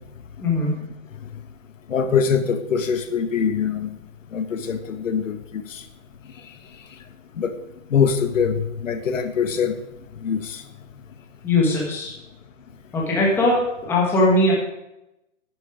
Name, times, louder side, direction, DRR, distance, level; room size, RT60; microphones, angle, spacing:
voice 1, 0.4-0.8 11.4-12.1 12.9-14.5, left 2 dB, 5° left, -3 dB, 1.5 m, -20 dB
voice 2, 1.9-3.9 4.3-5.8 7.4-7.5 7.9-9.7 10.2-10.6, left 6 dB, 80° left, 9 dB, 1.5 m, -23 dB
11.0 x 9.8 x 4.9 m, 0.89 s
hypercardioid pair, 175°, 38 cm